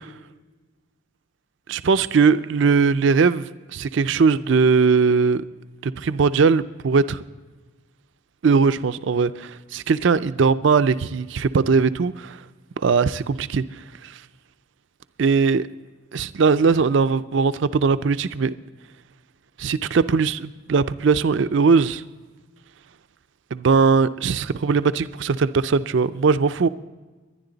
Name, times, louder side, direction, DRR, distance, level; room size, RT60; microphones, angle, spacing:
voice 1, 1.7-5.4 5.8-7.2 8.4-12.4 12.8-14.2 15.2-15.6 16.1-18.5 19.6-22.0 23.5-26.7, right 5 dB, 65° right, 0.4 m, -20 dB
23.5 x 10.5 x 3.9 m
head